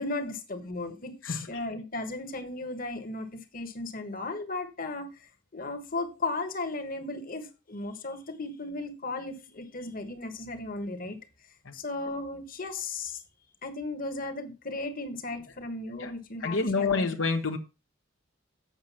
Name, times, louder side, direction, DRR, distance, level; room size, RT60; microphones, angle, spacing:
voice 1, 0.0-11.2 11.7-13.2 13.6-17.1, left 2 dB, 45° left, 1.4 m, -36 dB
voice 2, 1.2-1.6 7.0-7.2 11.6-11.7 16.0-16.1 16.4-17.6, left 4 dB, 75° left, 1.1 m, -29 dB
7.9 x 6.4 x 5.8 m
head